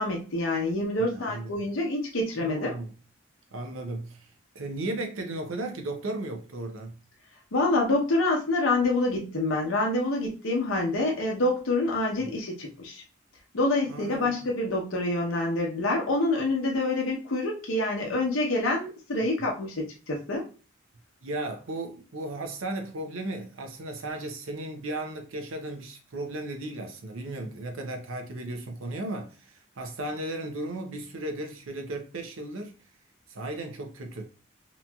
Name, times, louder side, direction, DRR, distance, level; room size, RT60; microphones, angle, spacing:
voice 1, 0.0-2.7 7.5-13.0 13.5-20.5, left 2 dB, 85° left, 0.7 m, -27 dB
voice 2, 1.0-1.7 2.4-2.9 3.5-4.3 4.5-7.0 12.2-12.3 13.9-14.3 21.2-32.7 33.3-34.3, right 2 dB, 85° right, 0.6 m, -35 dB
2.9 x 2.6 x 2.2 m
head